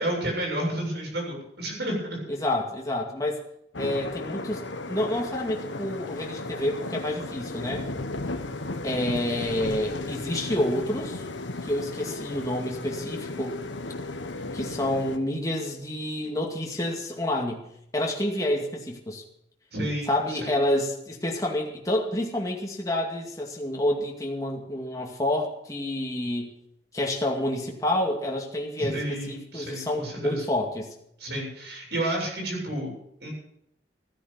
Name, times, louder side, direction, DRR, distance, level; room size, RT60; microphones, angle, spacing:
voice 1, 0.0-2.2 19.7-20.6 28.8-30.5 31.2-32.9 33.2-33.3, right 1 dB, 65° right, -1 dB, 7.6 m, -31 dB
voice 2, 2.3-3.4 3.8-7.9 8.8-11.3 11.6-13.6 14.5-17.7 17.9-19.2 20.1-26.5 26.9-30.9, left 1 dB, 20° left, 0 dB, 2.3 m, -28 dB
sound 1, 3.7-15.2, left 2 dB, 90° left, 1.4 m, -35 dB
16.0 x 10.0 x 6.9 m, 0.74 s
head